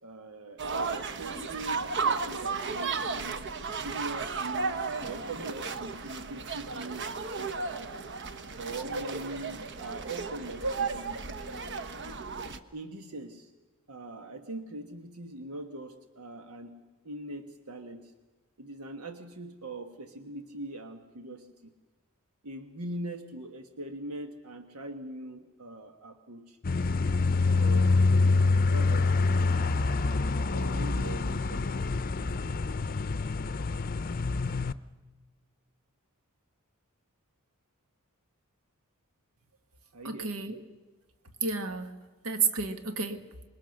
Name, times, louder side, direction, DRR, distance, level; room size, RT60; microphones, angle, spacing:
voice 1, 0.0-3.4 3.8-7.9 8.5-11.4 12.7-13.5 13.9-18.1 18.6-21.7 22.4-26.6 27.5-29.8 30.5-32.0 39.9-40.3, right 2 dB, 90° right, 7 dB, 1.4 m, -42 dB
sound 1, 0.6-12.6, right 4 dB, 55° right, 1.1 m, -34 dB
sound 2, 26.6-34.7, left 3 dB, 40° left, 0.6 m, -26 dB
voice 2, 40.0-40.6 41.4-41.9 42.2-43.2, right 5 dB, 70° right, 8 dB, 1.7 m, -30 dB
25.5 x 22.0 x 6.5 m, 1.3 s
head